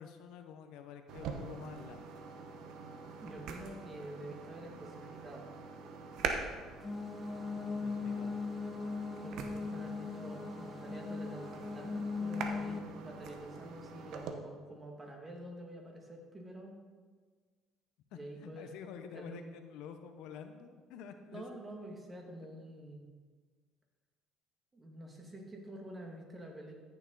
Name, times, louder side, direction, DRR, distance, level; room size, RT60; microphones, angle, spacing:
voice 1, 0.0-2.0 7.7-8.4 18.1-21.4, left 7 dB, 75° left, 7 dB, 0.8 m, -49 dB
sound 1, 1.1-14.3, right 5 dB, 70° right, 1.0 m, -44 dB
voice 2, 3.2-5.5 9.2-16.8 18.1-18.7 19.1-19.5 21.3-23.1 24.7-26.7, right 1 dB, 20° right, 0 dB, 2.2 m, -48 dB
sound 2, 6.8-12.8, left 4 dB, 20° left, 0.5 m, -39 dB
14.5 x 6.8 x 4.0 m, 1.5 s
cardioid pair, 100°, 0 cm